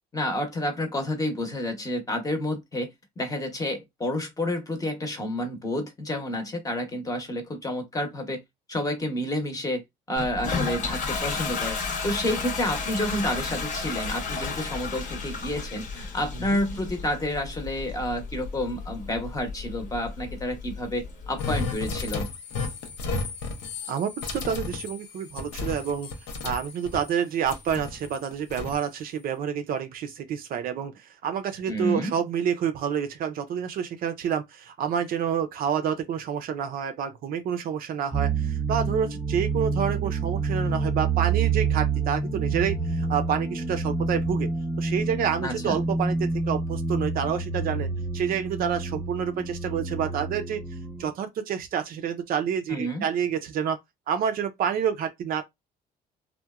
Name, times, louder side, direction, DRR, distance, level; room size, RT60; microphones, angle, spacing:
voice 1, 0.1-8.4 8.7-9.8 10.1-22.3 31.7-32.1 45.4-45.8 52.7-53.0, left 1 dB, 20° left, 0.8 m, -30 dB
Toilet flush, 10.2-21.7, left 5 dB, 50° left, 0.9 m, -33 dB
sound 1, 21.4-27.1 27.4-28.8, left 3 dB, 80° left, 0.6 m, -33 dB
voice 2, 23.9-26.1 26.4-44.5 44.8-50.6 51.0-53.8 54.1-55.4, right 8 dB, 60° right, 0.5 m, -28 dB
sound 2, 38.1-51.1, right 4 dB, ahead, 0.4 m, -28 dB
2.8 x 2.1 x 2.3 m
cardioid pair, 110°, 17 cm